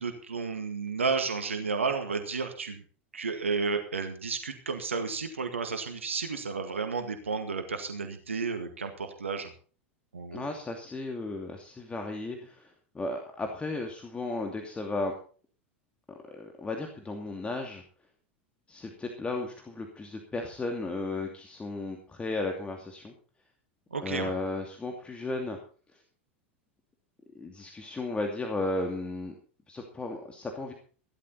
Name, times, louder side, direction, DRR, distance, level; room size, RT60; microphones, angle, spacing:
voice 1, 0.0-2.8 3.1-9.5 10.1-10.5 23.9-24.3, right 4 dB, 80° right, 6 dB, 2.0 m, -32 dB
voice 2, 10.3-15.1 16.1-17.8 18.7-23.1 24.0-25.6 27.3-29.3 29.7-30.7, left 2 dB, 15° left, 3 dB, 2.7 m, -35 dB
16.0 x 12.5 x 4.3 m, 0.40 s
figure-of-eight pair, 85°, 7 cm